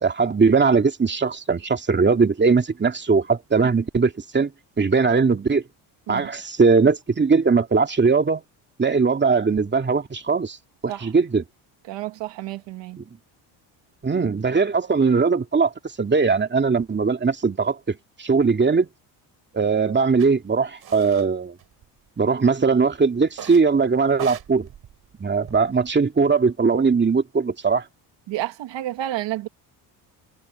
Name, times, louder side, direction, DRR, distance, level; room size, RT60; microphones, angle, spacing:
voice 1, 0.0-4.5 4.8-5.6 6.1-8.4 8.8-10.6 10.8-11.4 13.0-13.1 14.0-15.7 16.0-18.9 19.5-21.5 22.2-24.7 25.2-27.8, right 4 dB, 25° right, 2.3 m, -20 dB
voice 2, 11.9-13.0 28.3-29.5, right 14 dB, 75° right, 1.7 m, -30 dB
sound 1, 20.2-20.3 20.8-21.3 21.6-22.3 23.3-23.7 24.1-25.9, right 10 dB, 55° right, 3.2 m, -39 dB
supercardioid pair, 85°, 45 cm